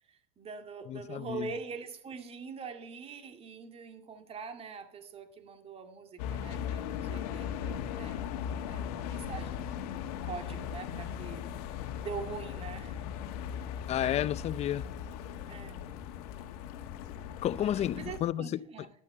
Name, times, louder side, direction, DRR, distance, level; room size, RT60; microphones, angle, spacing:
voice 1, 0.1-11.4 12.0-13.0 15.5-15.8 17.6-18.9, right 5 dB, 30° right, 2.3 m, -44 dB
voice 2, 0.9-1.5 13.9-14.9 17.4-18.6, left 11 dB, 35° left, 0.6 m, -31 dB
sound 1, 6.2-18.2, left 8 dB, 75° left, 1.8 m, -38 dB
12.0 x 11.0 x 7.3 m
supercardioid pair, 125°, 20 cm